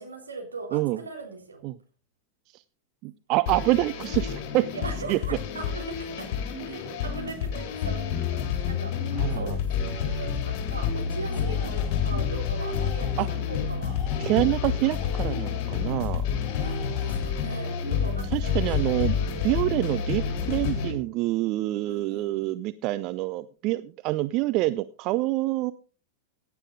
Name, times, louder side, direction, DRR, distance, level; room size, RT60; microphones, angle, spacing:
voice 1, 0.0-1.6 4.7-6.3 6.6-8.9 9.3-14.0 16.6-19.3 21.8-22.6, right 4 dB, 80° right, 1 dB, 3.5 m, -40 dB
voice 2, 3.0-4.7 5.1-5.2 9.1-9.4 13.2-13.3 14.2-16.2 18.3-25.7, right 18 dB, 40° right, 14 dB, 0.5 m, -26 dB
sound 1, 3.5-20.9, left 7 dB, 45° left, 3.3 m, -29 dB
Tools, 11.2-12.1 12.6-13.4 13.8-15.7 16.4-17.3, left 4 dB, 20° left, 6.2 m, -47 dB
16.0 x 9.7 x 3.9 m, 0.39 s
figure-of-eight pair, 90°, 0 cm